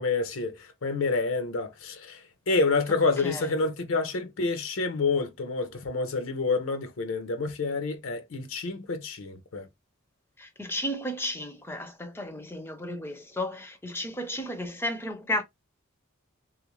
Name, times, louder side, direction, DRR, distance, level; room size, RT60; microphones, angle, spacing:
voice 1, 0.0-2.2 2.5-9.7, left 3 dB, 70° left, 0.6 m, -28 dB
voice 2, 10.4-15.4, left 1 dB, 10° left, 0.4 m, -33 dB
3.2 x 2.4 x 2.9 m
head